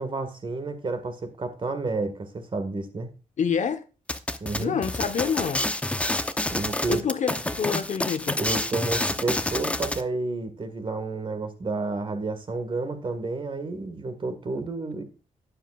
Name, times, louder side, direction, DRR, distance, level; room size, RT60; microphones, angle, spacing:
voice 1, 0.0-3.1 4.4-4.8 6.5-7.0 8.4-15.0, right 3 dB, 35° right, 1.8 m, -30 dB
voice 2, 3.4-3.8 4.6-5.6 6.9-8.4, left 7 dB, 60° left, 1.1 m, -27 dB
sound 1, 4.1-10.0, left 1 dB, 10° left, 0.7 m, -28 dB
12.5 x 10.0 x 2.4 m
wide cardioid pair, 140°, 14 cm